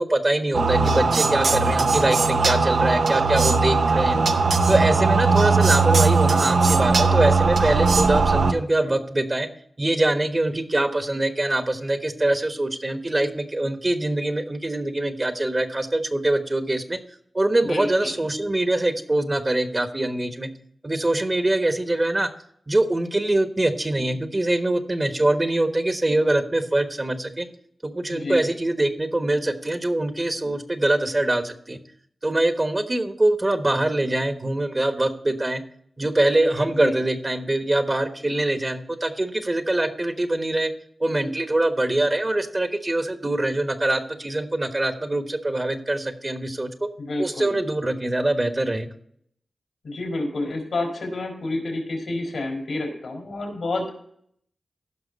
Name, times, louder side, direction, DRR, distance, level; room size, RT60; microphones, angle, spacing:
voice 1, 0.0-4.2 4.7-9.5 9.8-17.0 17.3-20.5 20.8-22.3 22.7-27.5 27.8-31.8 32.2-35.6 36.0-40.7 41.0-46.7 47.2-48.9, right 1 dB, 30° right, 8 dB, 1.2 m, -23 dB
sound 1, 0.5-8.5, right 4 dB, 80° right, 0.8 m, -19 dB
voice 2, 17.6-18.2 28.1-28.5 36.8-37.0 47.0-47.5 49.8-53.9, left 2 dB, 80° left, 1 dB, 3.9 m, -29 dB
15.5 x 5.8 x 4.1 m, 0.67 s
cardioid pair, 50°, 0 cm